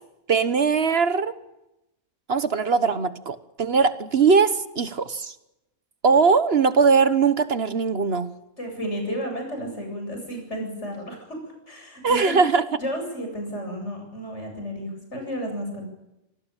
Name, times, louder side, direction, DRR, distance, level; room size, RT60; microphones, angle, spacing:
voice 1, 0.3-1.3 2.3-5.3 6.0-8.3 12.0-12.6, right 5 dB, 55° right, 12 dB, 1.4 m, -20 dB
voice 2, 8.6-11.2 11.7-12.4 12.8-15.9, equal, 65° left, 3 dB, 8.5 m, -32 dB
27.0 x 18.5 x 9.0 m, 0.91 s
omnidirectional pair, 1.3 m